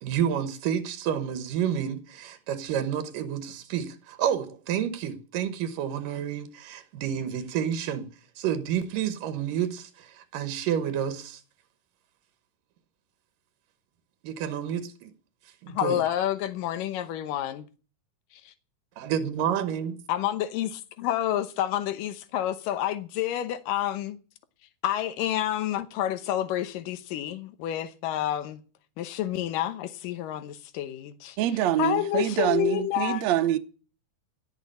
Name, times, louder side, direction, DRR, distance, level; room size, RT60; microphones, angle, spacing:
voice 1, 0.0-8.1 8.4-11.4 14.2-15.1 15.6-16.0 19.0-20.0, right 9 dB, 90° right, 2.9 m, -29 dB
voice 2, 15.7-17.7 18.3-18.5 20.1-24.2 24.8-28.6 29.0-31.4 31.8-33.2, left 12 dB, 90° left, 2.7 m, -29 dB
voice 3, 31.4-33.6, right 11 dB, 65° right, 2.0 m, -25 dB
17.5 x 6.2 x 8.6 m
omnidirectional pair, 3.7 m